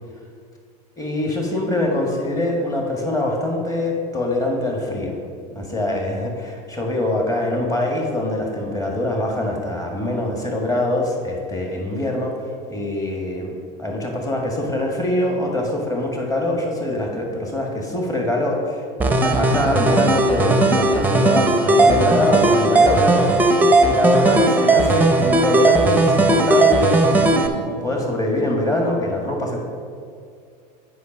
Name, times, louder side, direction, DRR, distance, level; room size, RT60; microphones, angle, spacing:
voice 1, 1.0-5.2 5.5-12.3 12.7-23.3 23.8-29.6, left 1 dB, 15° left, 0 dB, 1.7 m, -23 dB
sound 1, 19.0-27.5, right 2 dB, 10° right, 0.7 m, -16 dB
8.3 x 5.2 x 6.1 m, 2.3 s
supercardioid pair, 105°, 21 cm